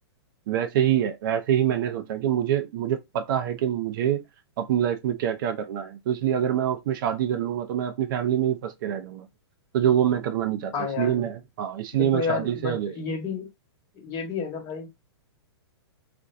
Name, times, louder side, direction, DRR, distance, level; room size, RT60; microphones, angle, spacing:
voice 1, 0.5-4.2 4.6-9.3 9.7-12.9, right 10 dB, 50° right, 0.4 m, -25 dB
voice 2, 10.7-11.3 11.9-13.5 13.9-14.9, left 6 dB, 35° left, 1.1 m, -31 dB
2.5 x 2.1 x 2.5 m
hypercardioid pair, 125°, 14 cm